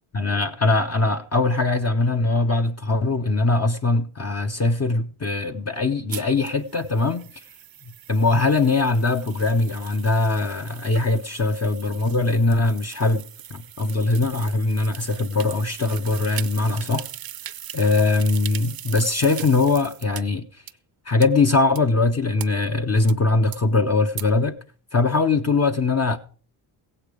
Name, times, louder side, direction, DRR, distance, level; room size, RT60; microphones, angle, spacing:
voice 1, 0.1-7.4 8.1-17.1 17.7-20.6 21.0-24.6 24.9-26.2, left 3 dB, 35° left, 0.9 m, -21 dB
sound 1, 6.1-20.2 20.7-20.8 21.2-21.3 21.8-21.9 22.4-22.5 23.1-23.2 23.5-23.6 24.2-24.3, right 11 dB, 50° right, 0.7 m, -39 dB
16.0 x 8.8 x 5.0 m
cardioid pair, 110°, 46 cm